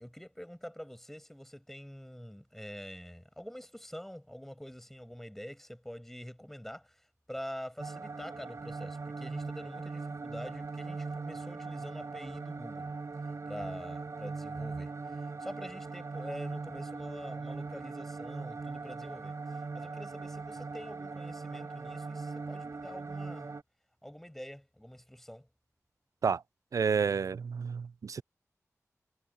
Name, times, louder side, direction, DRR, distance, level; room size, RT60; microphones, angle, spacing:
voice 1, 0.0-7.0 7.3-12.9 13.5-19.4 19.7-23.5 24.0-25.5, equal, 5° left, 6.2 m, -46 dB
sound 1, 7.8-23.6, right 4 dB, 70° right, 4.4 m, -40 dB
voice 2, 26.7-28.2, right 6 dB, 90° right, 0.4 m, -30 dB
wide cardioid pair, 95°, 6 cm